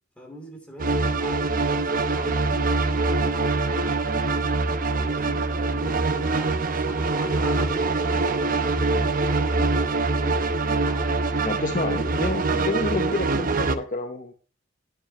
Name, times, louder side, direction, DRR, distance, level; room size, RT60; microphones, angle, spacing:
voice 1, 0.2-4.3 4.9-11.3, equal, 5° left, 2.7 m, -41 dB
sound 1, 0.8-13.8, right 3 dB, 45° right, 0.8 m, -24 dB
voice 2, 11.4-14.3, left 2 dB, 40° left, 0.8 m, -29 dB
10.0 x 9.1 x 3.0 m
head